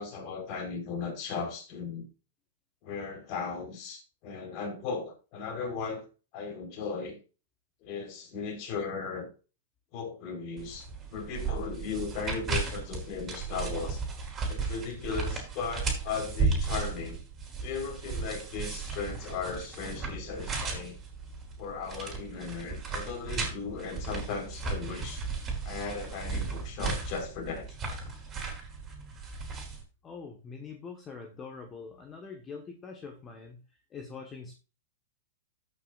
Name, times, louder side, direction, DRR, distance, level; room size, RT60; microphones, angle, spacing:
voice 1, 0.0-2.1 2.8-6.0 6.3-7.2 7.8-9.3 9.9-14.0 14.5-17.2 17.6-21.0 21.6-25.2 25.6-27.7, left 5 dB, 40° left, 4.3 m, -37 dB
sound 1, 10.6-29.8, right 4 dB, 20° right, 3.7 m, -35 dB
voice 2, 30.0-33.6 33.9-34.5, left 5 dB, 20° left, 1.4 m, -44 dB
14.0 x 6.2 x 2.5 m
hypercardioid pair, 150°, 0 cm